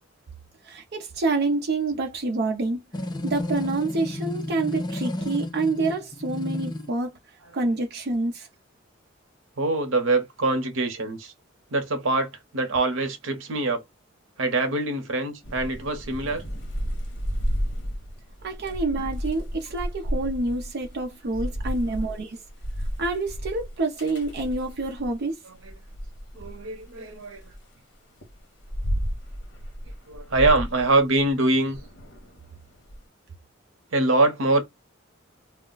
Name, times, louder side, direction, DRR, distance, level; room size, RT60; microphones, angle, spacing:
voice 1, 0.6-2.8 3.2-7.2 7.5-8.5 18.4-22.4 23.0-25.4, right 2 dB, 55° right, 0.5 m, -27 dB
sound 1, 2.9-6.9, left 1 dB, 20° left, 0.4 m, -32 dB
voice 2, 9.6-11.3 11.7-13.8 14.4-16.4 18.6-19.0 21.8-21.9 25.4-25.8 26.3-27.4 30.1-31.8 33.9-34.6, right 2 dB, 90° right, 0.8 m, -24 dB
Thunder / Rain, 15.4-25.1 25.6-27.6 28.2-33.0, equal, 60° left, 1.0 m, -32 dB
2.3 x 2.1 x 3.7 m
head